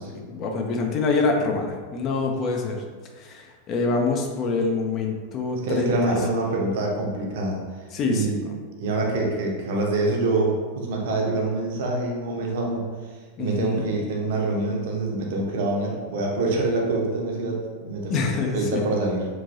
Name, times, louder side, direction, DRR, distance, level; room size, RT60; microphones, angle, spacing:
voice 1, 0.1-2.8 3.2-6.2 7.9-8.6 13.4-13.9 18.1-18.9, left 3 dB, 35° left, 2 dB, 0.4 m, -26 dB
voice 2, 5.6-7.6 8.1-8.4 8.8-12.8 13.4-19.3, right 2 dB, 55° right, -1 dB, 0.6 m, -25 dB
3.0 x 2.5 x 2.6 m, 1.5 s
figure-of-eight pair, 90°, 0 cm